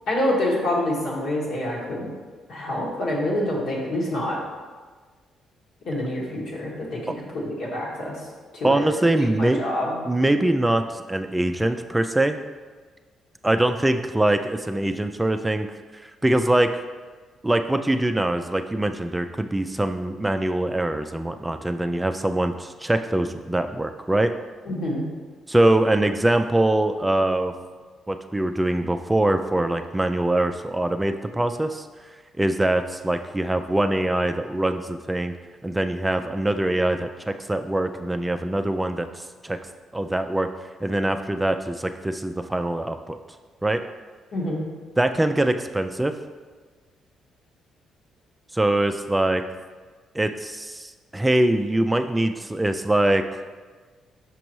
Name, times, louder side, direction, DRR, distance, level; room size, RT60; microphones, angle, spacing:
voice 1, 0.1-2.1 2.5-4.4 5.9-8.2 8.5-8.8 9.2-10.0 24.7-25.0 44.3-44.6, left 1 dB, 75° left, -4 dB, 1.7 m, -26 dB
voice 2, 8.6-9.6 10.1-12.4 13.4-15.7 15.9-16.8 17.4-24.3 25.5-27.5 28.1-31.9 32.4-35.3 35.6-39.6 39.9-40.5 40.8-43.2 43.6-43.8 45.0-46.1 48.5-49.4 50.1-53.4, right 1 dB, 10° right, 7 dB, 0.3 m, -23 dB
6.0 x 5.2 x 3.1 m, 1.4 s
cardioid pair, 90°, 0 cm